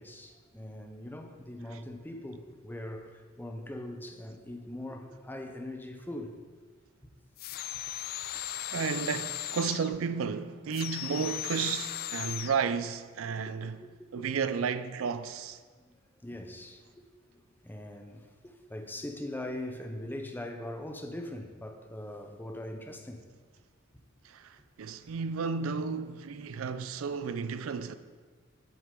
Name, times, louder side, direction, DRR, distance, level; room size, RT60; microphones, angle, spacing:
voice 1, 0.0-6.4 13.6-14.3 15.8-15.9 16.2-17.1 17.3-23.2, left 1 dB, 10° left, 0.6 m, -41 dB
Vaporizer Inhale, 7.4-10.0 10.7-12.6, left 12 dB, 50° left, 0.3 m, -37 dB
voice 2, 8.7-13.8 14.1-15.6 24.2-27.9, right 6 dB, 80° right, 0.4 m, -33 dB
8.5 x 8.0 x 3.8 m
head